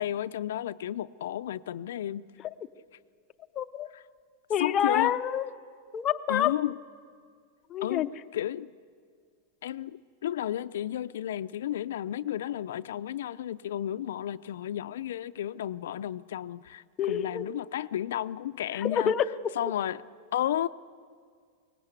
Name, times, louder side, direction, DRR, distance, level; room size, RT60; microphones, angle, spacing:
voice 1, 0.0-2.2 3.9-4.0 4.6-5.1 6.3-6.8 7.8-8.7 9.6-19.1 19.6-20.0 20.3-20.7, left 11 dB, 80° left, 13 dB, 0.5 m, -32 dB
voice 2, 3.5-3.9 4.5-5.5 5.9-6.5 7.7-8.1 17.0-17.5 18.7-19.3, left 9 dB, 25° left, 8 dB, 0.6 m, -27 dB
22.5 x 19.0 x 8.1 m, 2.1 s
supercardioid pair, 165°, 0 cm